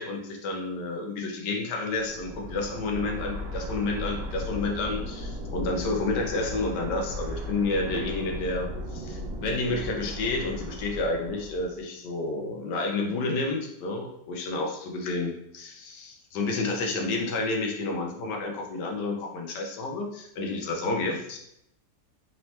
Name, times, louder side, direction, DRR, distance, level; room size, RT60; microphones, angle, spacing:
voice 1, 0.0-21.4, left 3 dB, 80° left, 1 dB, 1.4 m, -30 dB
sound 1, 1.9-11.8, equal, 65° right, 1.0 m, -36 dB
4.4 x 2.8 x 3.1 m, 0.75 s
omnidirectional pair, 1.8 m